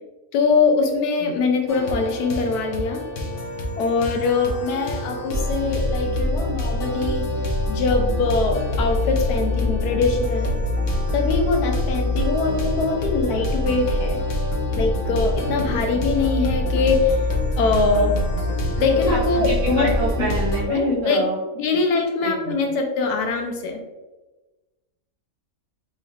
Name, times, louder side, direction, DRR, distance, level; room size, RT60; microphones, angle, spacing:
voice 1, 0.3-3.0 3.8-7.3 7.7-10.5 11.1-14.2 14.8-17.2 17.6-18.2 18.8-20.3 20.7-21.2 21.6-23.8, left 4 dB, 85° left, 4 dB, 1.1 m, -22 dB
sound 1, 1.7-20.6, left 1 dB, 60° left, 0.9 m, -25 dB
voice 2, 19.1-21.4 22.2-22.6, right 3 dB, 70° right, -3 dB, 0.6 m, -28 dB
3.3 x 3.1 x 2.3 m, 1.1 s
omnidirectional pair, 1.6 m